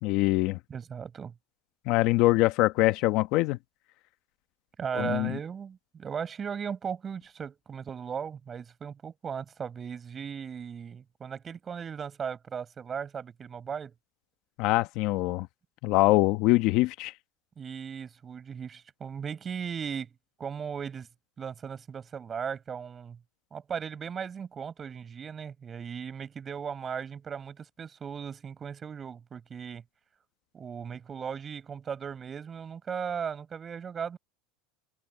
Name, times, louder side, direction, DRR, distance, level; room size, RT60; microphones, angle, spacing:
voice 1, 0.0-0.6 1.9-3.6 5.0-5.4 14.6-15.5 15.8-17.1, left 19 dB, 60° left, 1.2 m, -24 dB
voice 2, 0.7-1.3 4.8-13.9 17.6-20.1 20.4-21.1 21.4-23.2 23.5-29.8 30.5-34.2, right 7 dB, 25° right, 6.5 m, -37 dB
supercardioid pair, 130°, 0 cm